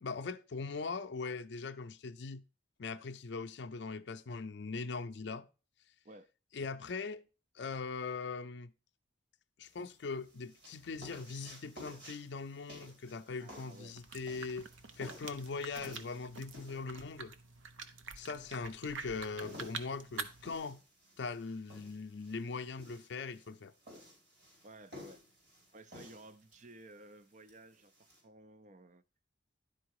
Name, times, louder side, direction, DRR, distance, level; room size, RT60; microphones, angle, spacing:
voice 1, 0.0-2.4 2.8-5.5 6.5-7.2 7.5-8.7 9.6-14.7 15.0-17.3 18.2-20.8 21.2-23.7, left 4 dB, 60° left, 0.5 m, -41 dB
sound 1, 9.6-28.2, left 1 dB, 55° right, 4.1 m, -55 dB
voice 2, 13.4-14.0 24.6-25.2 25.7-29.0, right 2 dB, 40° right, 0.5 m, -55 dB
sound 2, 13.9-20.6, right 5 dB, 85° right, 0.8 m, -47 dB
11.0 x 4.4 x 4.7 m
head